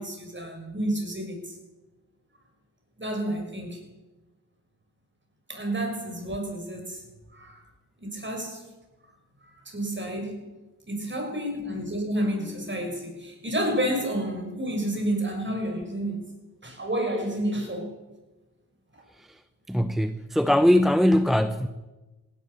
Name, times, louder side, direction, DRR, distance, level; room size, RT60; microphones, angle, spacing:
voice 1, 0.0-1.5 3.0-3.8 5.5-7.0 7.3-7.6 8.0-8.6 9.6-10.4 10.9-16.2 16.6-17.9 18.9-19.0, right 1 dB, 30° right, 6.3 m, -30 dB
voice 2, 19.7-21.7, left 1 dB, ahead, 0.8 m, -21 dB
17.0 x 11.5 x 7.0 m
supercardioid pair, 45°, 38 cm